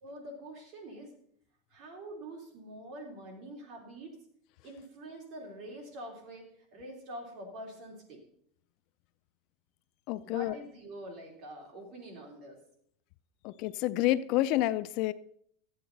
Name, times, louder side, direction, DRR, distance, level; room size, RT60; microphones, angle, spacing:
voice 1, 0.0-1.1 1.7-4.2 4.6-8.2 10.2-12.6, right 1 dB, 40° right, 1 dB, 3.1 m, -45 dB
voice 2, 10.1-10.6 13.4-15.1, left 15 dB, 50° left, 16 dB, 0.4 m, -29 dB
13.0 x 8.6 x 3.9 m, 0.66 s
supercardioid pair, 150°, 0 cm